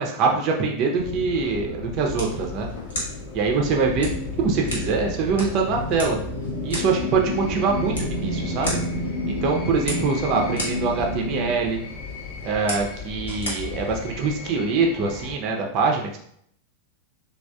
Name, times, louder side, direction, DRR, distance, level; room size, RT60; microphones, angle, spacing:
voice 1, 0.0-2.7 3.3-4.1 4.4-6.2 6.6-8.8 9.3-11.8 12.4-16.2, right 4 dB, 40° right, 1 dB, 0.5 m, -24 dB
sound 1, 1.0-15.4, left 4 dB, 45° left, 0.6 m, -36 dB
sound 2, 2.1-14.1, left 2 dB, 70° left, 1.1 m, -36 dB
sound 3, 4.0-11.5, equal, 85° left, 1.4 m, -31 dB
3.3 x 2.3 x 2.2 m, 0.66 s
figure-of-eight pair, 90°, 0 cm